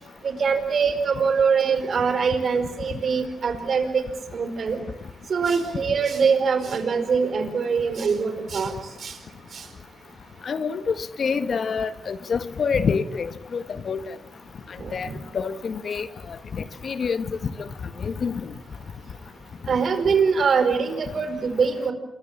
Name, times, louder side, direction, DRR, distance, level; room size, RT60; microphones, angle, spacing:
voice 1, 0.2-4.0 4.3-4.8 5.3-8.7 9.0-9.2 9.5-9.7 14.8-15.1 19.7-21.9, right 5 dB, 65° right, 8 dB, 4.7 m, -23 dB
voice 2, 10.4-14.0 14.9-15.1 15.3-16.1 16.5-17.2 17.6-17.7 18.0-18.4, left 5 dB, 60° left, 12 dB, 1.6 m, -27 dB
28.0 x 22.5 x 7.4 m, 0.77 s
cardioid pair, 60°, 0 cm